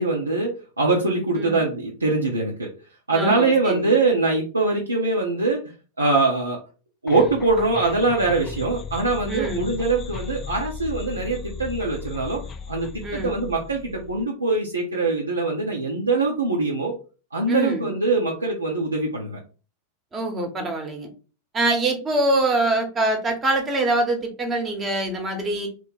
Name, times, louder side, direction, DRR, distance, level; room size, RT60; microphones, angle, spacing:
voice 1, 0.0-2.7 3.1-5.6 6.0-6.6 7.0-12.4 12.7-16.9 17.3-19.4, right 3 dB, 80° right, -3 dB, 0.6 m, -23 dB
voice 2, 3.1-3.8 9.3-9.7 13.0-13.4 17.5-17.9 20.1-21.1 21.5-25.7, right 2 dB, 20° right, 3 dB, 0.9 m, -24 dB
sound 1, 7.1-14.2, left 5 dB, 25° left, 0.3 m, -36 dB
2.9 x 2.1 x 4.0 m, 0.35 s
figure-of-eight pair, 90°, 0 cm